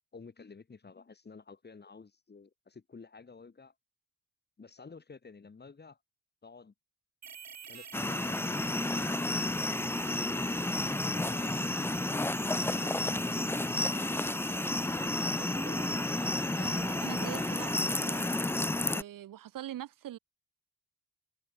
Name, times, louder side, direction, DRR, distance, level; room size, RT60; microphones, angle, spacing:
voice 1, 0.1-3.7 4.6-6.0 6.4-6.7 7.7-10.2 11.0-12.3 12.7-13.6, left 4 dB, 30° left, 1.8 m, -52 dB
sound 1, 7.2-18.6, right 7 dB, 55° right, 3.3 m, -46 dB
sound 2, 7.9-19.0, left 2 dB, 10° left, 0.4 m, -31 dB
voice 2, 15.3-18.3 18.7-20.2, right 12 dB, 85° right, 0.9 m, -44 dB
cardioid pair, 105°, 32 cm